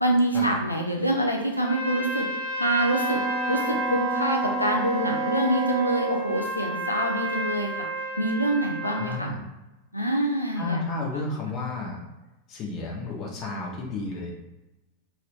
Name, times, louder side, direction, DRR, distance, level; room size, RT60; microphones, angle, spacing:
voice 1, 0.0-2.3 2.5-3.2 3.5-7.8 8.2-9.3 9.9-10.8 11.1-11.3, right 1 dB, 90° left, 0 dB, 0.5 m, -25 dB
Trumpet, 1.6-9.2, right 2 dB, 60° right, 1.0 m, -32 dB
Wind instrument woodwind instrument, 2.9-6.3, right 1 dB, 5° right, 0.4 m, -30 dB
voice 2, 8.8-9.4 10.6-12.0 12.5-14.3, left 3 dB, 35° left, -1 dB, 0.8 m, -32 dB
3.1 x 3.0 x 2.4 m, 1.0 s
figure-of-eight pair, 90°, 0 cm